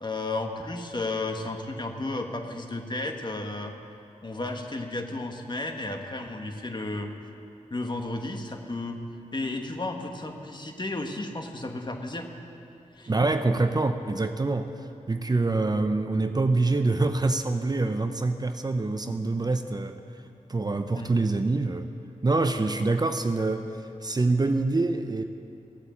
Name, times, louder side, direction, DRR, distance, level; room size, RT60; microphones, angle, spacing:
voice 1, 0.0-3.7 4.2-7.1 7.7-9.0 9.3-12.3 13.0-13.1 19.0-19.2 20.9-21.2, left 2 dB, 35° left, 4 dB, 1.6 m, -33 dB
voice 2, 13.1-14.7 15.1-20.0 20.5-21.9 22.2-23.7 24.0-25.2, right 3 dB, 30° right, 8 dB, 0.7 m, -25 dB
16.0 x 8.3 x 8.4 m, 2.7 s
cardioid pair, 60°, 13 cm